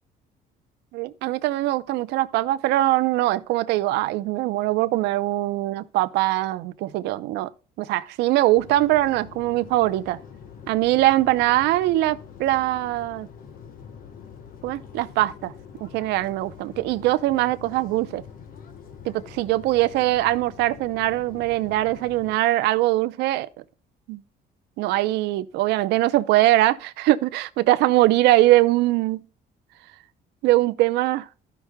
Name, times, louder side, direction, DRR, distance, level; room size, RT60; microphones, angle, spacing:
voice 1, 0.9-7.5 7.8-10.2 10.7-13.3 14.6-15.5 15.8-18.2 19.0-23.5 24.1-24.2 24.8-29.2 30.4-31.3, right 16 dB, 85° right, 0.6 m, -22 dB
sound 1, 8.5-22.4, left 7 dB, 60° left, 1.3 m, -45 dB
13.5 x 6.0 x 2.2 m
cardioid pair, 110°, 17 cm